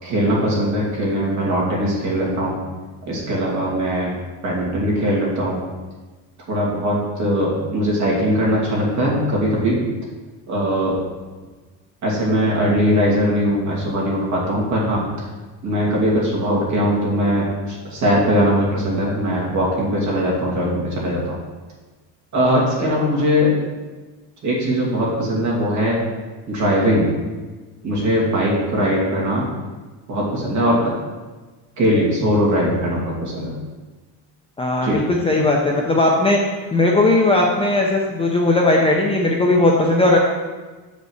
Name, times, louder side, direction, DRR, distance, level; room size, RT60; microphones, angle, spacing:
voice 1, 0.0-2.6 3.1-4.1 4.4-5.6 6.5-9.8 10.5-10.9 12.0-15.0 15.6-21.4 22.3-23.6 24.4-26.0 26.5-27.1 27.8-29.5 30.1-30.8 31.8-33.5 34.8-35.0, equal, 40° right, -4 dB, 2.7 m, -20 dB
voice 2, 22.4-23.0 34.6-36.4 36.7-40.2, left 2 dB, 15° left, -1 dB, 0.6 m, -18 dB
6.7 x 5.3 x 6.5 m, 1.3 s
cardioid pair, 155°, 42 cm